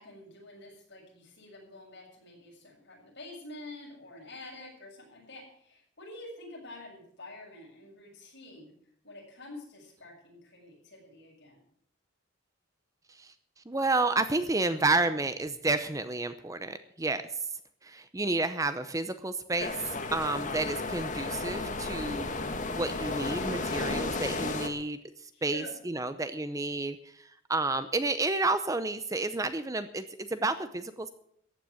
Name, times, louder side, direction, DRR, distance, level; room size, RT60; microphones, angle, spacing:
voice 1, 0.0-8.7 9.0-11.6 25.3-25.7, left 2 dB, 55° left, -2 dB, 7.0 m, -48 dB
voice 2, 13.7-17.5 17.8-19.7 20.1-31.1, right 2 dB, 15° right, 11 dB, 0.7 m, -31 dB
sound 1, 19.6-24.7, left 3 dB, 40° left, 1.6 m, -33 dB
14.5 x 9.2 x 8.0 m, 0.68 s
head